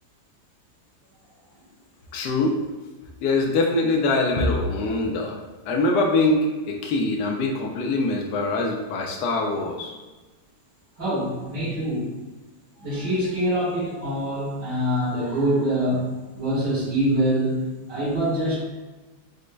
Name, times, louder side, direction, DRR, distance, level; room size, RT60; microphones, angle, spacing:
voice 1, 2.1-2.6 3.2-5.4 5.7-9.9, left 2 dB, 80° left, 1 dB, 1.2 m, -23 dB
voice 2, 11.0-12.2 12.8-18.6, right 1 dB, 85° right, -14 dB, 2.3 m, -25 dB
5.1 x 3.8 x 2.2 m, 1.2 s
omnidirectional pair, 1.8 m